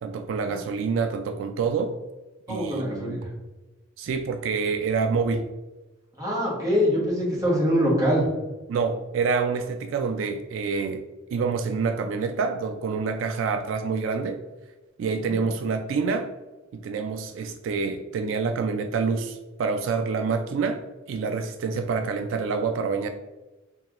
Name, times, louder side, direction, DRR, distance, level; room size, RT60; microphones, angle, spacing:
voice 1, 0.0-1.9 2.5-3.2 4.0-5.5 8.7-11.0 11.3-14.4 15.0-16.3 16.7-20.8 21.1-23.1, right 5 dB, 80° right, 7 dB, 0.3 m, -27 dB
voice 2, 2.5-3.3 6.2-8.3 15.3-15.4, equal, 20° right, -6 dB, 1.3 m, -24 dB
3.7 x 3.2 x 3.0 m, 1.1 s
head